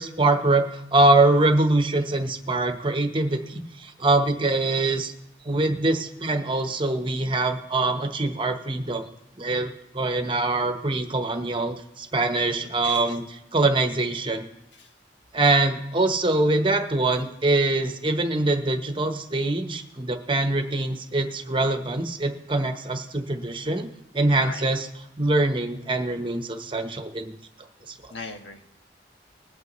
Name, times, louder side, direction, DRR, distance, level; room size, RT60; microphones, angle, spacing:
voice 1, 0.0-5.1 5.4-9.0 9.4-14.5 15.3-23.9 24.1-24.9 25.2-27.3, right 2 dB, 30° right, 5 dB, 1.0 m, -23 dB
voice 2, 12.6-13.0 14.8-14.9 24.4-24.6 28.1-28.7, left 3 dB, 80° left, 4 dB, 1.4 m, -39 dB
21.0 x 8.5 x 3.1 m, 0.88 s
head